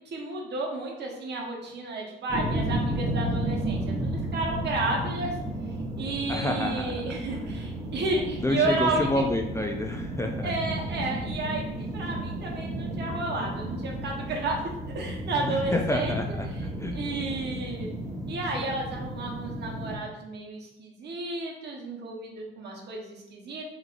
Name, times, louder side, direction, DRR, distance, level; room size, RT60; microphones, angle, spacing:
voice 1, 0.1-5.3 6.0-9.1 10.4-16.4 16.9-17.9 18.3-23.6, right 2 dB, 60° right, 0 dB, 0.9 m, -32 dB
sound 1, 2.3-20.0, right 1 dB, 15° right, 1.0 m, -33 dB
voice 2, 6.3-7.2 8.4-10.5 15.4-17.0, left 1 dB, 15° left, 2 dB, 0.3 m, -29 dB
3.7 x 3.1 x 2.4 m, 0.88 s
cardioid pair, 90°, 20 cm